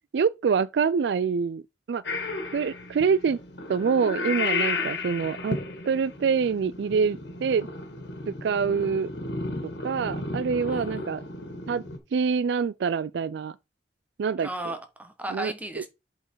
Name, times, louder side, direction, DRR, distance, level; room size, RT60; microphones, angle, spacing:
voice 1, 0.1-1.6 1.9-2.0 2.5-3.4 3.7-5.6 5.9-7.7 8.4-9.1 9.8-11.2 11.7-11.8 12.1-13.6 14.2-14.5 15.3-15.5, right 6 dB, 65° right, 0.3 m, -25 dB
Purr / Meow, 2.0-12.0, left 3 dB, 65° left, 1.9 m, -33 dB
voice 2, 10.6-11.1 14.4-15.9, right 1 dB, 10° right, 1.2 m, -35 dB
7.5 x 4.5 x 4.6 m
head